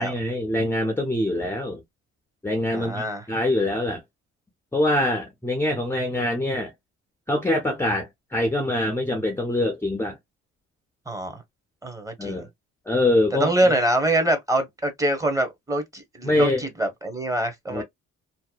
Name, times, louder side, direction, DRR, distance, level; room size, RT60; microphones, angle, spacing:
voice 1, 0.0-1.8 2.4-4.0 4.7-6.7 7.3-10.2 12.2-12.5 12.9-13.5 16.2-16.7 17.7-17.8, left 1 dB, 10° left, 0.6 m, -24 dB
voice 2, 2.7-3.2 11.1-11.4 11.8-12.4 13.4-17.8, right 1 dB, 10° right, 1.0 m, -24 dB
2.8 x 2.1 x 2.3 m
cardioid pair, 90°, 30 cm